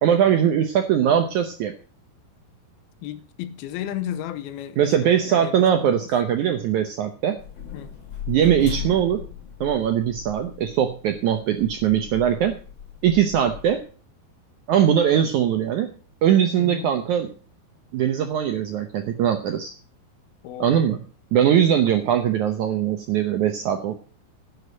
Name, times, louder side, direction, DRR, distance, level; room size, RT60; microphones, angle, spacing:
voice 1, 0.0-1.7 4.8-7.4 8.3-9.2 9.6-12.6 13.0-13.8 14.7-15.9 16.2-17.3 17.9-19.7 20.6-21.0 21.3-24.0, right 9 dB, 75° right, 1.8 m, -21 dB
voice 2, 3.0-6.1 7.7-7.9 16.6-16.9 20.4-20.9, left 11 dB, 80° left, 2.6 m, -34 dB
sound 1, 7.4-13.8, left 9 dB, 40° left, 2.0 m, -37 dB
11.0 x 6.8 x 7.9 m
omnidirectional pair, 4.5 m